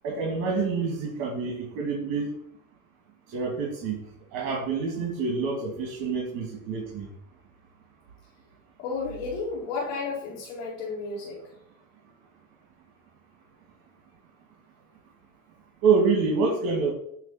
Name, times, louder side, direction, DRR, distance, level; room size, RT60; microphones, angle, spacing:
voice 1, 0.0-2.3 3.3-4.0 4.3-7.1 15.8-16.9, right 4 dB, 65° right, -1 dB, 2.2 m, -26 dB
voice 2, 8.8-11.4, left 4 dB, 85° left, -5 dB, 2.3 m, -32 dB
9.0 x 3.2 x 5.6 m, 0.74 s
supercardioid pair, 105°, 40 cm